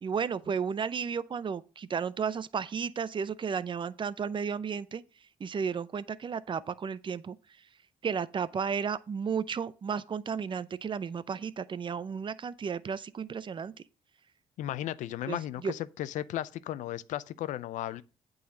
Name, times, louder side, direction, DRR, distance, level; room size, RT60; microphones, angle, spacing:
voice 1, 0.0-5.0 5.4-7.4 8.0-13.7 15.3-15.7, right 6 dB, 40° right, 0.6 m, -33 dB
voice 2, 14.6-18.0, left 13 dB, 80° left, 0.5 m, -35 dB
8.4 x 4.0 x 6.5 m
cardioid pair, 75°, 13 cm